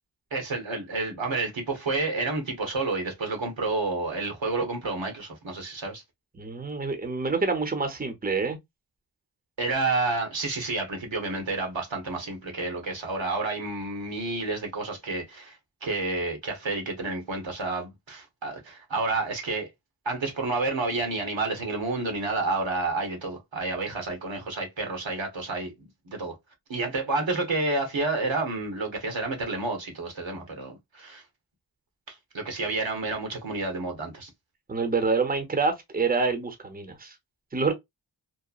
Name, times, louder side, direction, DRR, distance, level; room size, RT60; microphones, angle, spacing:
voice 1, 0.3-6.0 9.6-15.6 15.8-19.7 20.0-26.3 26.7-31.2 32.1-34.3, right 3 dB, 75° right, 1.1 m, -30 dB
voice 2, 6.4-8.6 34.7-37.1 37.5-37.7, right 4 dB, 20° right, 0.7 m, -27 dB
2.9 x 2.1 x 2.3 m
cardioid pair, 45°, 46 cm